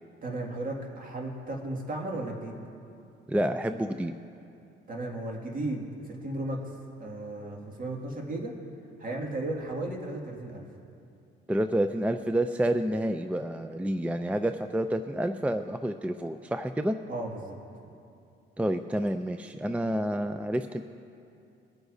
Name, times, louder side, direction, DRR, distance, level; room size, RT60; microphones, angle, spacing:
voice 1, 0.2-2.6 4.9-6.7 7.0-8.5 9.0-10.7 17.1-17.6, right 2 dB, 45° right, 0 dB, 2.1 m, -35 dB
voice 2, 3.3-4.1 11.5-17.0 18.6-20.8, right 1 dB, 5° right, 9 dB, 0.4 m, -29 dB
22.0 x 9.5 x 2.7 m, 2.6 s
cardioid pair, 90°, 20 cm